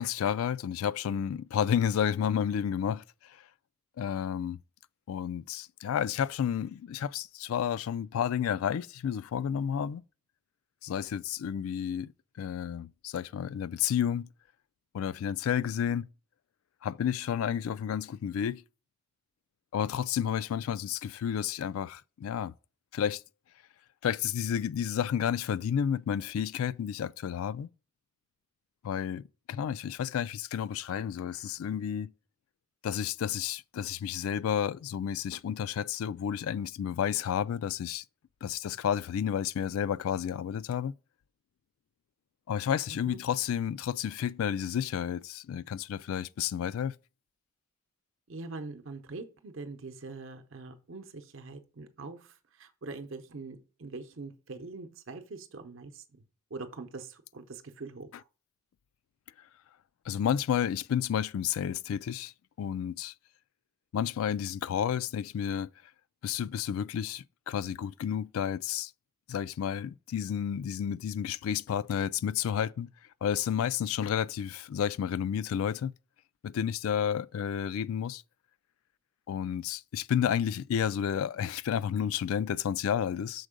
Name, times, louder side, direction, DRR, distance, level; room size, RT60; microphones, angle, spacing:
voice 1, 0.0-3.0 4.0-4.6 5.1-10.0 10.8-12.1 12.4-14.3 14.9-16.0 16.8-18.6 19.7-22.5 22.9-23.2 24.0-27.7 28.8-32.1 32.8-38.0 38.4-40.9 42.5-46.9 60.1-62.3 62.6-63.1 63.9-65.7 66.2-68.9 69.3-72.9 73.2-75.9 76.4-78.2 79.3-83.5, left 8 dB, 80° left, 0.3 m, -31 dB
voice 2, 48.3-56.2 56.5-58.2, right 3 dB, 65° right, 0.7 m, -43 dB
6.3 x 4.5 x 5.0 m
head